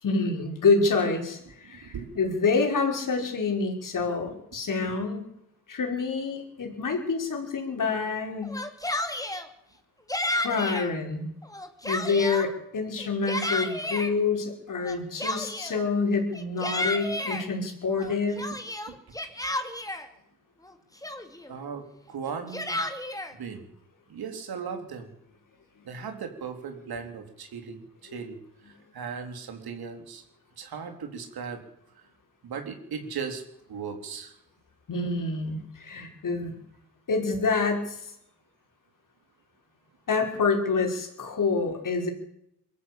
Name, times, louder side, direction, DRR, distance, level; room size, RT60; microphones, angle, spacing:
voice 1, 0.0-5.3 5.7-8.6 10.3-11.3 11.8-18.5 34.9-36.6 37.1-38.1 40.1-42.1, left 4 dB, 60° left, 3 dB, 5.5 m, -27 dB
voice 2, 1.6-2.2 18.9-19.0 21.5-22.8 23.4-23.7 24.1-25.1 25.8-30.2 30.6-31.6 32.0-32.1 32.4-33.4 33.7-34.4, right 6 dB, 80° right, 6 dB, 4.0 m, -37 dB
Yell, 8.4-9.5 10.1-10.9 11.4-12.5 13.0-14.1 14.8-15.8 16.3-17.4 18.0-20.1 20.6-20.7 21.0-21.5 22.3-23.3, left 1 dB, 10° left, 2.6 m, -32 dB
23.0 x 14.0 x 8.7 m, 0.77 s
cardioid pair, 100°, 36 cm